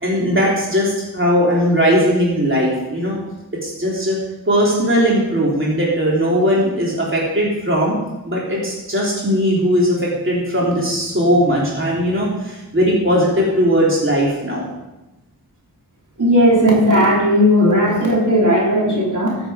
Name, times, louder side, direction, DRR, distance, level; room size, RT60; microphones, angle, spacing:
voice 1, 0.0-3.2 3.6-4.2 4.5-8.0 8.3-14.7, equal, 30° right, -5 dB, 3.6 m, -18 dB
voice 2, 16.2-19.4, equal, 50° right, -4 dB, 3.8 m, -15 dB
15.0 x 7.8 x 5.1 m, 1.0 s
wide cardioid pair, 70°, 39 cm